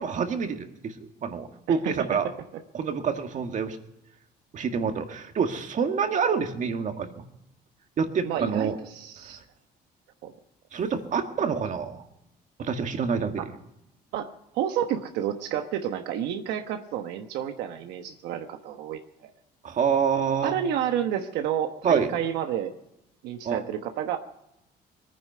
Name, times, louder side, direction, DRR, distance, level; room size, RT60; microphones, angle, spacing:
voice 1, 0.0-2.2 2.7-3.8 4.5-7.1 8.0-8.8 10.7-12.0 12.6-13.5 19.6-20.6 21.8-22.1 23.4-23.6, right 6 dB, 50° right, 6 dB, 1.9 m, -27 dB
voice 2, 8.2-9.4 10.2-10.3 13.4-13.5 14.1-14.3 14.5-19.3 20.4-22.7 23.2-24.2, right 10 dB, 85° right, 6 dB, 1.1 m, -30 dB
21.5 x 10.0 x 5.5 m, 0.85 s
cardioid pair, 110°, 17 cm